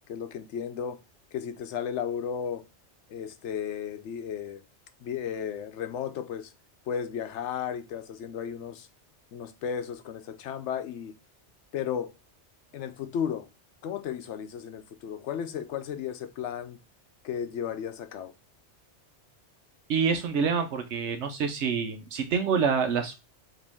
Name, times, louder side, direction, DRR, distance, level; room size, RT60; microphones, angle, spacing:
voice 1, 0.1-1.0 1.3-2.6 3.1-4.6 5.0-6.5 6.9-8.9 9.3-11.1 11.7-12.1 12.7-13.5 13.8-16.8 17.2-18.3, left 8 dB, 80° left, 0.9 m, -34 dB
voice 2, 19.9-23.2, right 6 dB, 75° right, 1.0 m, -27 dB
5.0 x 3.0 x 3.4 m
omnidirectional pair, 1.2 m